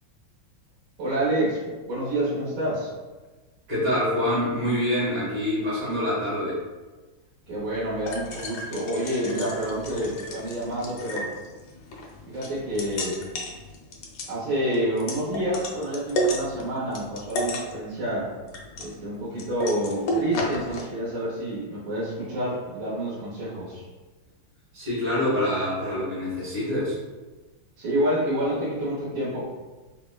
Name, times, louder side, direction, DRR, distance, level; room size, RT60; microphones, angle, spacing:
voice 1, 1.0-2.9 7.5-11.3 12.3-13.2 14.3-18.3 18.8-23.8 27.8-29.4, right 1 dB, 85° right, -10 dB, 1.8 m, -28 dB
voice 2, 3.7-6.6 24.7-27.0, left 1 dB, 65° right, -9 dB, 2.1 m, -26 dB
sound 1, 7.5-20.8, equal, 75° left, 1.0 m, -33 dB
4.2 x 2.1 x 2.2 m, 1.2 s
omnidirectional pair, 2.2 m